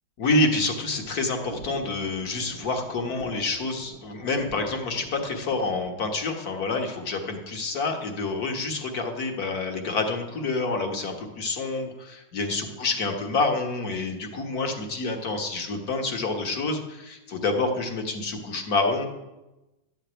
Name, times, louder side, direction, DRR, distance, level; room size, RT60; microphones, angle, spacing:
voice 1, 0.2-19.1, left 3 dB, 50° left, 4 dB, 2.0 m, -28 dB
sound 1, 0.9-5.9, equal, 20° left, 0.9 m, -44 dB
13.0 x 6.7 x 9.0 m, 1.0 s
omnidirectional pair, 2.2 m